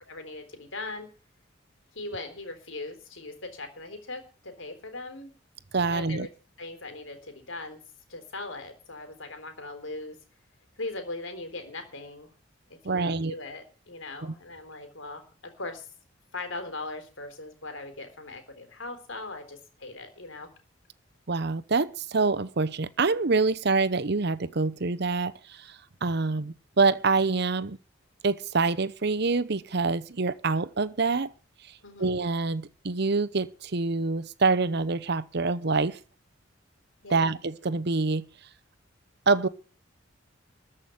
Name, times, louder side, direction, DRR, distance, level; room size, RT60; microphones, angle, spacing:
voice 1, 0.1-1.1 1.9-5.3 5.9-6.3 6.6-7.8 8.1-10.2 10.8-12.3 12.7-15.2 15.6-15.9 16.3-20.5 31.8-32.1 37.0-37.4, left 2 dB, 80° left, 4.0 m, -39 dB
voice 2, 5.7-6.3 12.8-13.3 14.2-14.3 21.3-27.8 28.2-31.3 32.0-36.0 37.1-38.2 39.3-39.5, right 3 dB, 55° right, 0.8 m, -26 dB
14.0 x 6.1 x 9.4 m
head